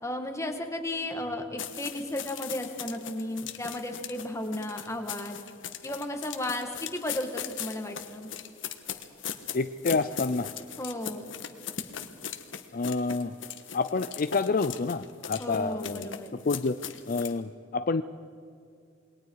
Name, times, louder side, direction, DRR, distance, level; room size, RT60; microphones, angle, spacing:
voice 1, 0.0-5.4 5.8-8.3 10.8-11.2 15.4-16.3, left 1 dB, 15° left, 4 dB, 1.9 m, -34 dB
sound 1, 1.6-17.4, left 8 dB, 85° left, 1.4 m, -39 dB
voice 2, 9.5-10.5 12.7-13.3 13.7-16.1 16.5-16.8 17.1-18.0, left 4 dB, 50° left, 12 dB, 0.5 m, -28 dB
28.0 x 22.0 x 4.8 m, 2.5 s
head